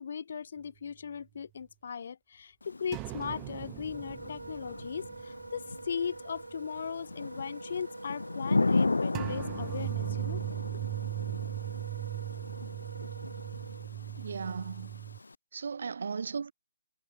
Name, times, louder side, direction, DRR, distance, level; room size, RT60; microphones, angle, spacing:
voice 1, 0.0-10.4 10.7-10.8, left 6 dB, 55° left, 3.1 m, -38 dB
Thunder / Rain, 2.6-15.4, left 3 dB, 85° left, 2.1 m, -36 dB
sound 1, 2.9-6.0 6.4-6.5 9.1-15.2, right 22 dB, 20° right, 0.5 m, -38 dB
Wind instrument woodwind instrument, 3.8-13.9, right 3 dB, 80° right, 1.4 m, -46 dB
voice 2, 14.2-15.0 15.5-16.5, right 5 dB, 65° right, 2.2 m, -36 dB
figure-of-eight pair, 145°, 0 cm